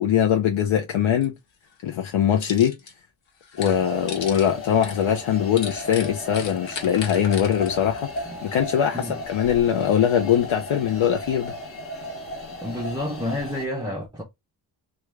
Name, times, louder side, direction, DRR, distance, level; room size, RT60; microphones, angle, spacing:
voice 1, 0.0-1.3 1.8-2.7 3.6-8.1 8.4-11.5, left 9 dB, 85° left, 0.6 m, -22 dB
sound 1, 1.2-1.3 1.7-2.9 3.3-8.8 9.2-9.8 10.2-11.5 12.0-13.6, left 5 dB, 70° left, 1.0 m, -39 dB
sound 2, 3.6-13.7, left 1 dB, 30° left, 0.8 m, -36 dB
voice 2, 12.6-14.2, left 1 dB, 10° right, 0.4 m, -30 dB
3.1 x 2.3 x 3.3 m
wide cardioid pair, 160°, 47 cm